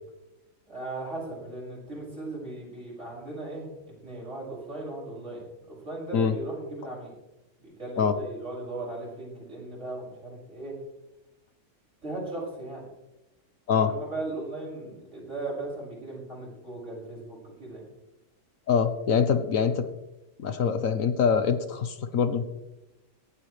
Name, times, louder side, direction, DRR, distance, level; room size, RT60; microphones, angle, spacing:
voice 1, 0.7-3.7 4.0-7.1 7.6-10.7 12.0-12.9 13.7-17.9, right 2 dB, 55° right, -5 dB, 6.8 m, -37 dB
voice 2, 18.7-19.9 20.4-22.5, left 6 dB, 70° left, 9 dB, 1.4 m, -24 dB
18.0 x 12.5 x 3.3 m, 0.97 s
omnidirectional pair, 1.5 m